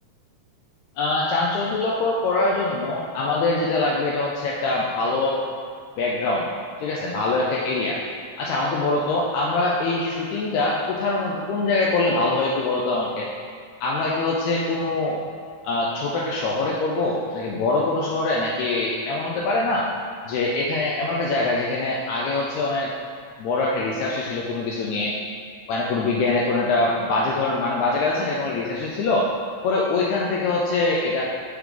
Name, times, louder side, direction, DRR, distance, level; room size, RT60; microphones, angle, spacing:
voice 1, 1.0-5.4 6.0-6.5 6.8-8.0 8.4-13.3 13.8-15.2 15.6-19.9 20.3-22.9 23.4-25.1 25.7-29.3 29.6-31.2, left 2 dB, 80° left, -3 dB, 1.9 m, -23 dB
6.8 x 4.7 x 3.7 m, 2.1 s
omnidirectional pair, 3.4 m